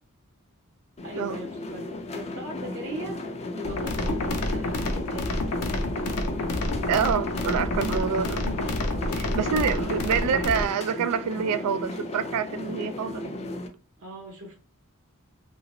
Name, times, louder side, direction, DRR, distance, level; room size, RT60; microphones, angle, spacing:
sound 1, 1.0-13.7, left 2 dB, 30° left, 0.4 m, -35 dB
voice 1, 1.0-1.8 2.1-3.2 3.5-5.4 9.0-10.2 14.0-14.5, equal, 55° right, 0.8 m, -39 dB
sound 2, 3.6-10.7, left 2 dB, 75° left, 0.6 m, -28 dB
voice 2, 6.9-8.5 9.1-13.3, right 7 dB, 80° right, 0.3 m, -27 dB
2.9 x 2.5 x 2.9 m
head